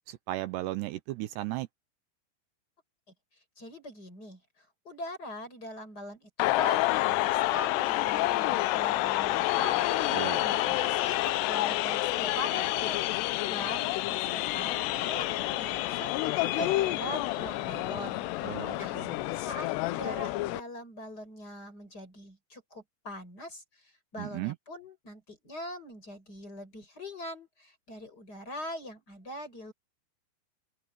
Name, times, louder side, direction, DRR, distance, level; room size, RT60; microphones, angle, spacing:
voice 1, 0.1-1.7 10.1-10.5 18.4-19.2 24.2-24.6, right 17 dB, 80° right, 2.9 m, -35 dB
voice 2, 3.6-4.4 4.9-13.1 13.5-16.2 16.5-19.0 19.3-29.7, left 1 dB, 20° left, 6.9 m, -42 dB
sound 1, 6.4-20.6, left 17 dB, 80° left, 2.7 m, -29 dB
sound 2, 9.8-14.4 15.3-20.0, right 3 dB, 10° right, 1.2 m, -51 dB
open air
omnidirectional pair, 5.0 m